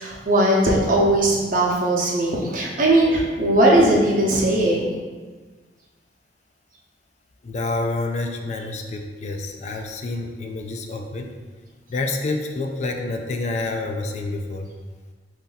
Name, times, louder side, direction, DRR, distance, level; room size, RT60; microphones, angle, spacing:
voice 1, 0.0-4.9, right 1 dB, 50° right, -3 dB, 0.8 m, -19 dB
voice 2, 7.4-11.3 11.9-14.7, left 2 dB, 40° left, 4 dB, 0.3 m, -28 dB
4.2 x 2.7 x 3.9 m, 1.4 s
head